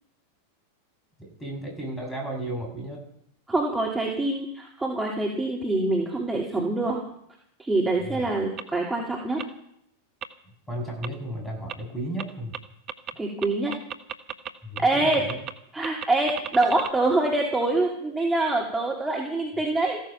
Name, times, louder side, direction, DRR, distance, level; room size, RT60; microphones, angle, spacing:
voice 1, 1.2-3.0 8.1-8.3 10.7-12.5 14.6-15.4, right 1 dB, 10° left, 1 dB, 7.9 m, -34 dB
voice 2, 3.5-7.0 7.6-9.4 13.2-13.7 14.8-15.3 15.7-20.0, right 2 dB, 5° right, -2 dB, 3.2 m, -25 dB
sound 1, 8.6-8.7 9.4-9.5 10.2-10.3 11.0-11.1 11.7-11.8 12.2-12.3 12.5-12.6 12.9-13.1 13.4-14.5 14.8-14.9 15.1-15.5 15.8-16.9, right 9 dB, 35° right, 1.3 m, -33 dB
15.5 x 14.5 x 6.0 m, 0.72 s
figure-of-eight pair, 90°, 0 cm